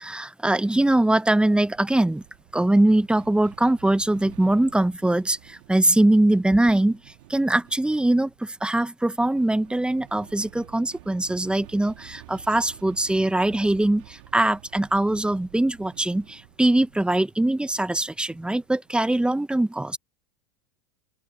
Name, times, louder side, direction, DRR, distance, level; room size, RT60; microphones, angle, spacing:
voice 1, 0.0-2.2 2.5-20.0, right 1 dB, 5° right, 1.3 m, -22 dB
sound 1, 1.5-19.0, right 20 dB, 60° right, 3.6 m, -50 dB
open air
hypercardioid pair, 90°, 20 cm